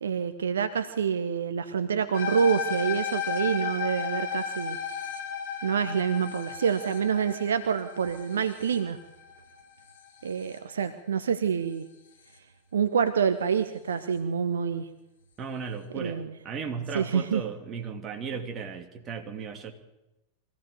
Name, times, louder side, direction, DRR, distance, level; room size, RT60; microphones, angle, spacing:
voice 1, 0.0-4.8 5.6-9.0 10.2-11.9 12.7-14.9 15.9-16.3 16.9-17.4, right 7 dB, 65° right, 11 dB, 1.0 m, -27 dB
sound 1, 2.1-10.6, left 7 dB, 60° left, 4.3 m, -34 dB
voice 2, 15.4-19.7, right 6 dB, 25° right, 4 dB, 3.1 m, -36 dB
23.5 x 16.0 x 6.9 m, 0.95 s
figure-of-eight pair, 90°, 0 cm